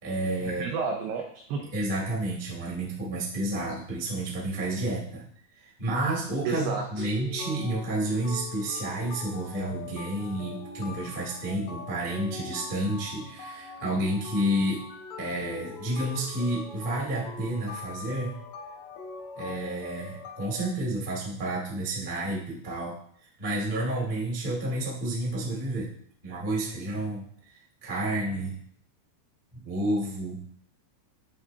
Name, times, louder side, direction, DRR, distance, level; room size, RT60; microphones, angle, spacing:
voice 1, 0.0-0.8 1.7-5.2 5.5-14.8 15.2-18.3 19.3-23.0 23.4-25.9 26.2-27.3 27.8-28.6 29.6-30.4, right 1 dB, 55° right, -5 dB, 0.5 m, -30 dB
voice 2, 0.6-1.6 6.5-7.1, right 5 dB, 90° right, 1 dB, 2.3 m, -31 dB
sound 1, 7.0-20.7, left 4 dB, 90° left, 2.0 m, -42 dB
11.0 x 3.8 x 2.8 m, 0.62 s
omnidirectional pair, 5.5 m